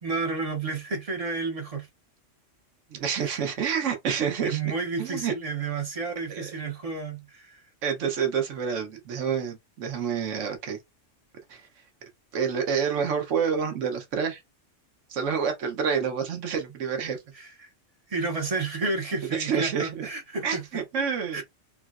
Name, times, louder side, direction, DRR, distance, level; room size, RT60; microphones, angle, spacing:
voice 1, 0.0-1.9 3.2-3.4 4.4-7.6 17.3-17.7 18.1-20.6 21.3-21.4, right 3 dB, 40° right, 0.5 m, -31 dB
voice 2, 2.9-4.6 5.0-5.3 6.3-6.5 7.8-10.8 11.5-11.7 12.3-14.4 15.1-17.2 19.3-20.1 20.4-21.4, right 7 dB, 80° right, 1.2 m, -28 dB
3.7 x 2.0 x 2.4 m
omnidirectional pair, 1.3 m